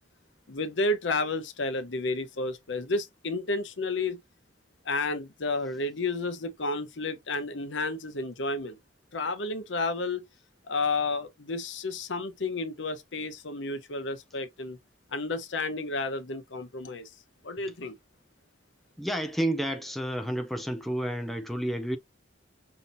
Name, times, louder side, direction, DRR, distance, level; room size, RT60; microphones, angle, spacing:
voice 1, 0.5-4.2 4.9-8.8 9.1-10.2 10.7-14.8 15.1-17.1 17.4-18.0, left 3 dB, 75° left, 0.8 m, -31 dB
voice 2, 19.0-22.0, right 1 dB, ahead, 0.5 m, -30 dB
5.4 x 2.8 x 2.6 m
head